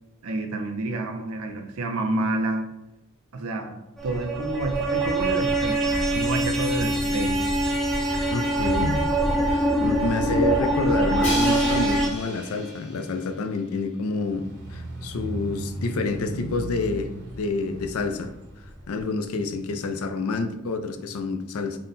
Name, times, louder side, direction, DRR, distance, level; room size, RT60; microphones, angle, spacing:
voice 1, 0.2-2.7 3.3-7.5, right 2 dB, 80° right, 5 dB, 0.6 m, -29 dB
sound 1, 4.0-12.1, right 1 dB, ahead, 0.5 m, -24 dB
voice 2, 8.3-9.0 9.5-14.4 14.7-17.1 17.4-18.3 18.9-21.8, left 3 dB, 80° left, 7 dB, 0.4 m, -28 dB
Crash cymbal, 11.2-13.2, left 1 dB, 30° left, 1.0 m, -33 dB
sound 2, 14.1-19.1, right 1 dB, 50° right, 0.8 m, -37 dB
3.8 x 2.2 x 4.0 m, 0.92 s
head